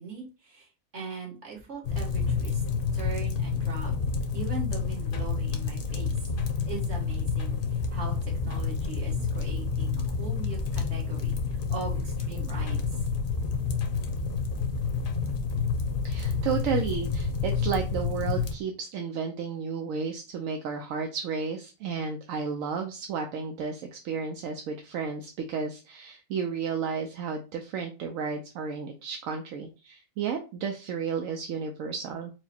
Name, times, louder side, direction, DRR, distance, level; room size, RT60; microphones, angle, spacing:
voice 1, 0.0-2.6 2.9-3.9 4.3-6.1 6.6-13.0 14.2-14.3, right 4 dB, 55° right, -1 dB, 1.6 m, -40 dB
sound 1, 1.8-18.5, left 5 dB, 50° left, 0.8 m, -29 dB
voice 2, 16.0-32.3, right 6 dB, 80° right, 4 dB, 1.0 m, -32 dB
4.6 x 2.0 x 4.2 m, 0.31 s
omnidirectional pair, 1.4 m